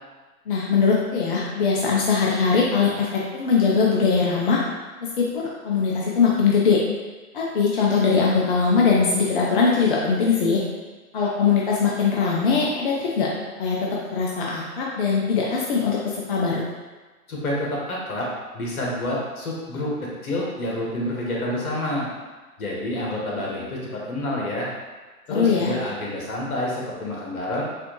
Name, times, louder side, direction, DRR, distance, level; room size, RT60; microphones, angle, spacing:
voice 1, 0.5-4.6 5.0-6.8 7.3-10.6 11.1-13.3 13.6-16.6 25.3-25.7, left 5 dB, 35° left, -4 dB, 0.5 m, -21 dB
voice 2, 17.3-18.3 18.5-19.9 20.2-22.1 22.6-24.7 25.3-27.6, left 1 dB, 65° left, -3 dB, 1.4 m, -28 dB
4.1 x 2.7 x 2.9 m, 1.3 s
figure-of-eight pair, 120°, 46 cm